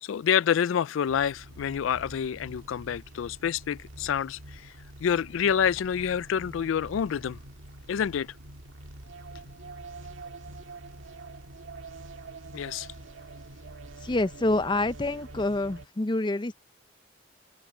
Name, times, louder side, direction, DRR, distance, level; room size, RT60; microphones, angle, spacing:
voice 1, 0.0-4.7 5.0-7.4 7.9-8.3 12.5-12.9, left 8 dB, 80° left, 0.3 m, -27 dB
sound 1, 1.1-15.9, right 2 dB, 75° right, 1.9 m, -46 dB
voice 2, 14.0-16.5, left 2 dB, 25° left, 0.5 m, -27 dB
open air
head